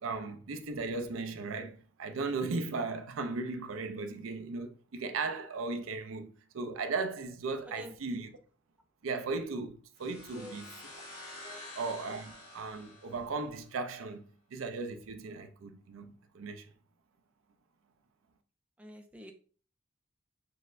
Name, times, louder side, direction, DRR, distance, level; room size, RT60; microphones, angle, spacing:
voice 1, 0.0-8.4 9.0-10.7 11.8-14.2 14.5-16.7, right 3 dB, 80° right, 0.5 m, -37 dB
voice 2, 7.7-8.2 10.3-10.6 11.4-11.7 18.8-19.3, equal, 5° right, 0.3 m, -49 dB
sound 1, 10.0-13.7, left 2 dB, 90° left, 1.7 m, -49 dB
6.2 x 2.1 x 2.5 m
head